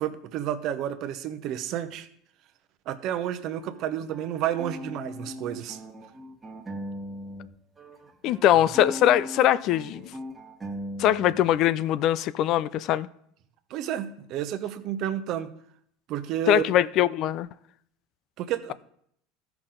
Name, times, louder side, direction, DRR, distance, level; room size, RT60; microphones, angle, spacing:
voice 1, 0.0-2.1 2.9-5.8 13.7-15.5 16.1-16.6 18.4-18.7, right 11 dB, 55° right, 0.8 m, -30 dB
sound 1, 3.6-7.5 7.8-11.6, equal, 20° right, 1.3 m, -39 dB
voice 2, 8.2-10.1 11.0-13.1 16.5-17.5, left 12 dB, 55° left, 0.3 m, -22 dB
14.0 x 5.9 x 3.8 m
supercardioid pair, 105°, 0 cm